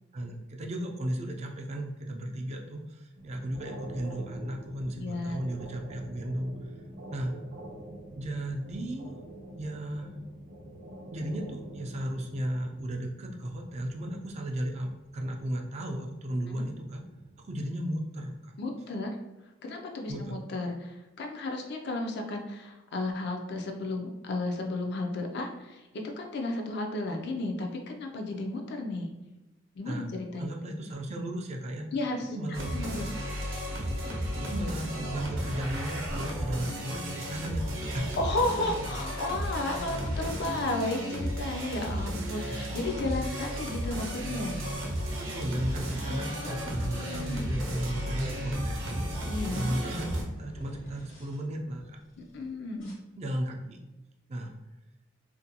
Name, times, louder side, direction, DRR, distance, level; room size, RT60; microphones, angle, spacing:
voice 1, 0.1-6.5 7.1-7.3 8.2-9.1 9.6-10.1 11.1-17.0 17.4-18.4 20.1-20.4 29.9-30.1 30.4-31.9 32.3-32.8 33.1-33.2 33.8-33.9 34.3-38.2 42.5-42.6 45.2-49.1 49.5-52.0 52.3-52.4 53.2-53.8 54.3-54.5, right 1 dB, 35° right, 1 dB, 0.3 m, -35 dB
sound 1, 3.2-17.5, right 1 dB, 55° right, 0.8 m, -47 dB
voice 2, 5.0-5.4 16.5-16.6 18.6-19.2 19.6-29.1 29.8-30.6 31.9-33.1 38.2-44.6 46.0-47.6 49.3-49.8 52.2-52.9, left 2 dB, 60° left, 2 dB, 0.4 m, -33 dB
sound 2, 32.5-50.2, equal, 85° right, 0.6 m, -34 dB
sound 3, 36.3-42.2 42.6-51.4 52.0-52.4 52.8-52.9, equal, 75° left, 1.2 m, -48 dB
2.5 x 2.2 x 2.7 m, 1.0 s
head